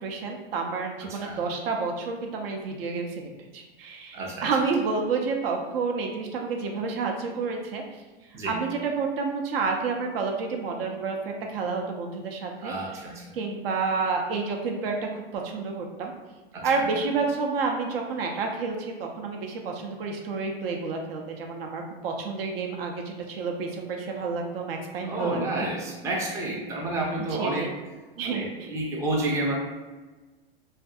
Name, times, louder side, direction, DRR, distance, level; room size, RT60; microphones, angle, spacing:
voice 1, 0.0-7.8 8.5-12.7 13.3-16.1 16.6-25.4 27.4-27.7 28.2-28.7, right 4 dB, 75° right, 2 dB, 0.6 m, -29 dB
voice 2, 1.0-1.4 4.1-4.5 8.3-8.6 12.6-13.4 16.5-16.8 25.0-27.7 28.2-29.5, right 2 dB, 10° right, -2 dB, 0.3 m, -30 dB
2.5 x 2.3 x 2.5 m, 1.2 s
hypercardioid pair, 125°, 29 cm